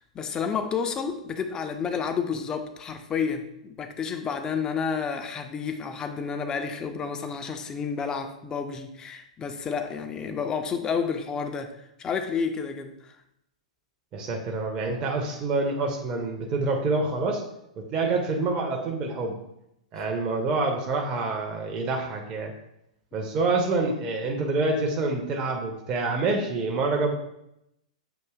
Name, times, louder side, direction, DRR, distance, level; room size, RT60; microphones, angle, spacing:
voice 1, 0.0-13.1, left 6 dB, 20° left, 7 dB, 0.4 m, -30 dB
voice 2, 14.1-17.4 17.8-19.3 19.9-22.5 23.1-27.1, right 3 dB, 25° right, 1 dB, 0.6 m, -27 dB
6.9 x 2.7 x 2.3 m, 0.80 s
figure-of-eight pair, 105°, 4 cm